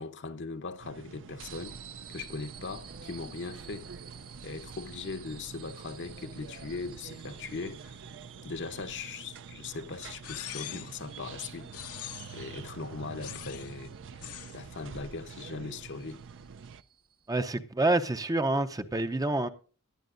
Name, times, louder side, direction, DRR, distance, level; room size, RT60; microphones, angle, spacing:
voice 1, 0.0-1.8 2.1-3.9 4.4-8.0 8.4-11.7 12.3-14.3 14.5-16.2, left 4 dB, 55° left, 0.9 m, -39 dB
sound 1, 0.8-16.8, right 5 dB, 55° right, 0.5 m, -47 dB
sound 2, 1.4-17.5, right 6 dB, 85° right, 1.6 m, -52 dB
sound 3, 10.2-11.0 11.7-12.5 13.2-13.8 14.2-14.6, left 12 dB, 85° left, 1.1 m, -42 dB
voice 2, 17.3-19.5, right 2 dB, 15° right, 0.6 m, -27 dB
18.5 x 11.5 x 2.6 m
head